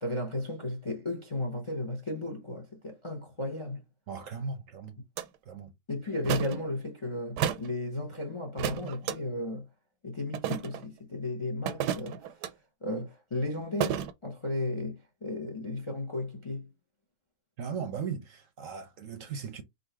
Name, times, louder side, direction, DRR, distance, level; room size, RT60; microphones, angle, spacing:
voice 1, 0.0-3.8 5.9-9.7 10.0-12.5 12.8-16.7, left 2 dB, 30° left, 0.5 m, -35 dB
voice 2, 4.1-5.0 5.4-5.7 17.6-19.6, right 6 dB, 60° right, 0.9 m, -37 dB
sound 1, 5.2-5.3 6.2-6.6 7.4-7.7 8.6-9.2 10.3-10.8 11.7-12.5 13.8-14.1, right 9 dB, 85° right, 1.2 m, -31 dB
3.8 x 2.7 x 4.5 m
omnidirectional pair, 1.8 m